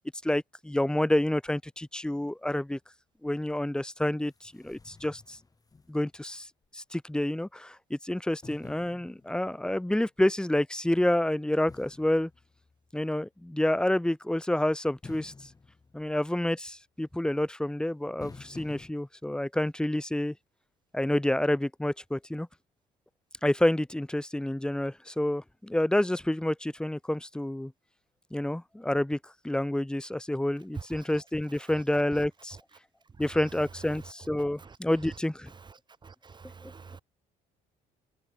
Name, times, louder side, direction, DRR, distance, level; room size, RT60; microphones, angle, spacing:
voice 1, 0.2-2.8 3.2-5.4 5.9-6.5 6.7-12.3 12.9-15.3 15.9-20.3 20.9-22.5 23.4-27.7 28.3-32.6 33.2-35.5 36.6-36.7, left 1 dB, 5° left, 1.9 m, -28 dB
sound 1, 3.9-4.0 4.3-6.3 6.6-6.7 8.4-9.8 11.7-13.1 15.0-16.6 18.2-18.9, left 4 dB, 20° left, 3.7 m, -50 dB
voice 2, 36.0-37.0, right 5 dB, 25° right, 1.7 m, -49 dB
cardioid pair, 110°, 17 cm